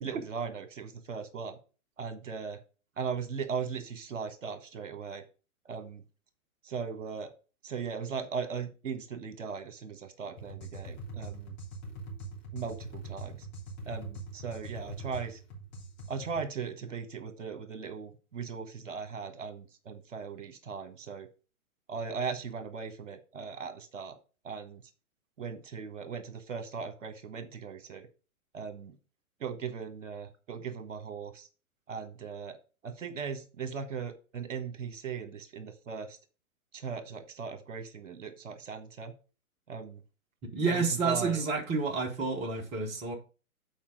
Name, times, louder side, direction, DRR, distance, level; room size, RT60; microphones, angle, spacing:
voice 1, 0.0-1.6 2.0-2.6 3.0-5.2 5.6-6.0 6.6-7.3 7.6-11.5 12.5-13.5 13.9-15.4 16.1-21.3 21.9-24.2 24.4-24.8 25.4-28.1 28.5-28.9 29.4-31.5 31.9-32.6 32.8-36.2 36.7-39.1 39.7-40.0 40.7-41.4, right 6 dB, 60° right, 1.4 m, -38 dB
sound 1, 10.4-16.5, right 2 dB, 25° left, 2.8 m, -43 dB
voice 2, 40.5-43.1, right 4 dB, 15° right, 0.9 m, -29 dB
7.4 x 4.6 x 4.8 m
figure-of-eight pair, 120°, 43 cm